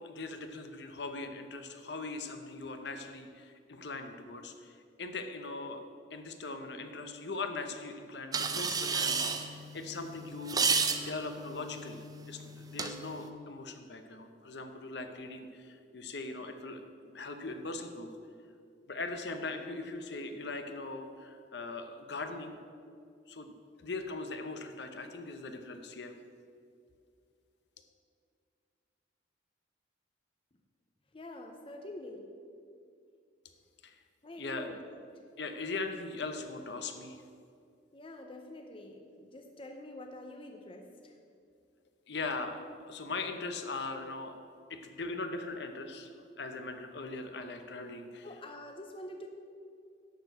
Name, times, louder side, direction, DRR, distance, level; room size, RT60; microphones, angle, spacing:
voice 1, 0.0-5.8 6.1-10.6 11.0-16.8 17.1-18.1 18.9-22.6 23.3-26.1 33.8-34.0 34.4-34.7 35.4-37.2 42.1-42.6 42.9-44.4 44.7-46.1 46.4-48.3, left 3 dB, 60° left, 6 dB, 0.8 m, -40 dB
sound 1, 8.3-13.3, right 5 dB, 20° right, 0.5 m, -33 dB
voice 2, 31.1-32.4 34.2-35.2 37.9-41.2 48.2-49.3, left 1 dB, 30° left, 4 dB, 0.6 m, -46 dB
11.5 x 4.6 x 7.9 m, 2.3 s
head